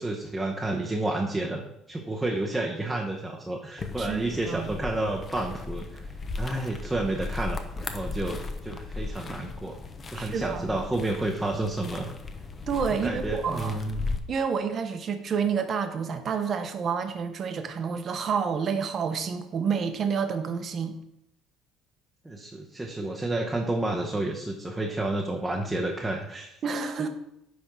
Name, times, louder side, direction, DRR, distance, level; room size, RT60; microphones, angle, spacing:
voice 1, 0.0-1.6 1.9-6.1 6.4-9.8 10.1-12.1 13.0-14.1 22.2-26.6, right 2 dB, 5° right, -1 dB, 0.8 m, -30 dB
sound 1, 3.8-14.2, left 3 dB, 25° left, 0.7 m, -36 dB
voice 2, 4.0-4.7 10.1-10.7 12.6-13.8 14.3-21.0 26.6-27.1, right 6 dB, 35° right, 8 dB, 0.9 m, -29 dB
10.0 x 3.6 x 5.9 m, 0.80 s
cardioid pair, 145°, 0 cm